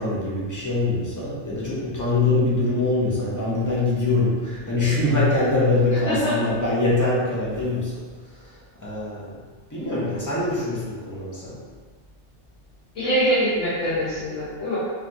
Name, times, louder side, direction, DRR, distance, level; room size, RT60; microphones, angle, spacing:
voice 1, 0.0-9.4 9.7-11.6, left 2 dB, 25° left, -7 dB, 0.4 m, -24 dB
voice 2, 5.9-6.3 12.9-14.8, equal, 75° left, -12 dB, 1.3 m, -24 dB
3.2 x 2.3 x 2.6 m, 1.5 s
omnidirectional pair, 1.2 m